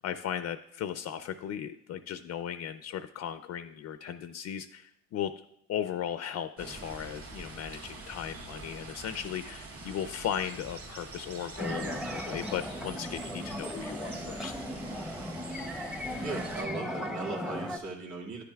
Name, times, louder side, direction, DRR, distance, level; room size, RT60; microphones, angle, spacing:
voice 1, 0.0-5.3 5.7-14.6, left 9 dB, 60° left, 10 dB, 0.4 m, -36 dB
sound 1, 6.6-16.6, right 3 dB, 50° right, 2.1 m, -45 dB
sound 2, 11.6-17.8, equal, ahead, 0.7 m, -37 dB
voice 2, 16.2-18.4, right 3 dB, 70° right, -3 dB, 2.3 m, -38 dB
10.5 x 9.8 x 2.3 m, 0.75 s
cardioid pair, 90°, 30 cm